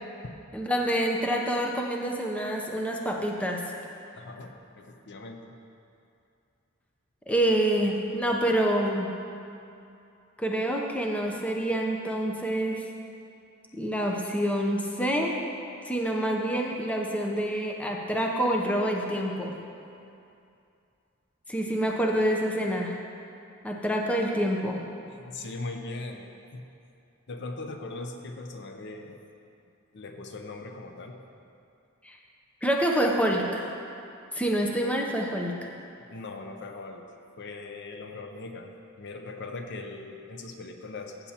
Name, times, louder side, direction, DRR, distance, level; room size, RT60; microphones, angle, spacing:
voice 1, 0.5-3.6 7.3-9.1 10.4-12.8 13.7-15.3 15.8-19.6 21.5-22.9 23.6-24.8 32.0-32.2 32.6-33.7 34.3-35.6, right 1 dB, 5° left, 0 dB, 0.6 m, -27 dB
voice 2, 4.1-5.5 25.1-26.7 27.3-29.2 29.9-31.2 36.1-37.1 37.4-41.3, left 3 dB, 55° left, 4 dB, 0.6 m, -40 dB
15.0 x 7.1 x 2.8 m, 2.6 s
head